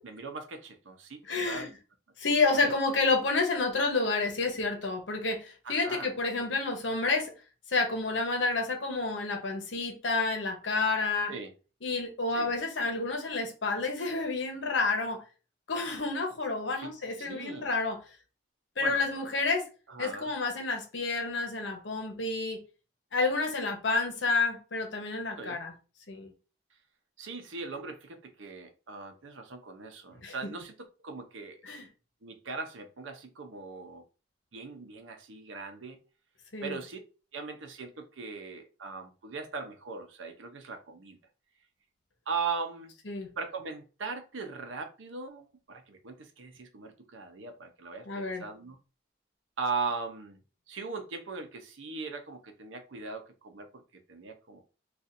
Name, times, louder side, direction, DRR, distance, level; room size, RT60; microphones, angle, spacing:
voice 1, 0.0-1.2 1.5-1.7 2.6-2.7 5.6-6.1 11.3-11.5 12.3-12.5 16.8-16.9 17.2-17.7 18.8-19.2 19.9-20.3 25.4-25.6 27.2-30.7 31.0-31.7 32.2-34.0 34.5-36.0 36.6-37.0 37.3-41.2 42.3-42.9 43.4-48.8 49.6-50.4 50.7-53.8 54.1-54.6, right 4 dB, 85° right, 0.7 m, -39 dB
voice 2, 1.3-1.7 2.2-7.3 7.7-11.3 11.8-15.2 15.7-18.0 18.8-19.7 20.0-22.6 23.1-25.7 26.1-26.3 30.2-30.3 31.6-31.9 36.5-36.8 43.1-43.3 48.1-48.4, left 3 dB, 75° left, 0.9 m, -29 dB
4.1 x 2.4 x 2.5 m
head